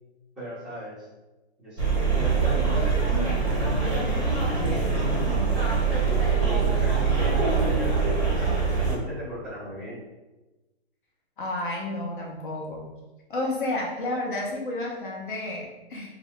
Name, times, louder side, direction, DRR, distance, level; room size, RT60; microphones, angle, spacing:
voice 1, 0.4-1.1 1.6-2.7 3.0-5.6 6.4-10.0, equal, ahead, -15 dB, 0.7 m, -38 dB
sound 1, 1.8-9.0, right 4 dB, 25° right, 1.0 m, -23 dB
voice 2, 11.4-12.8 13.3-16.1, left 2 dB, 50° left, -2 dB, 0.7 m, -31 dB
2.3 x 2.2 x 3.4 m, 1.1 s
hypercardioid pair, 150°, 33 cm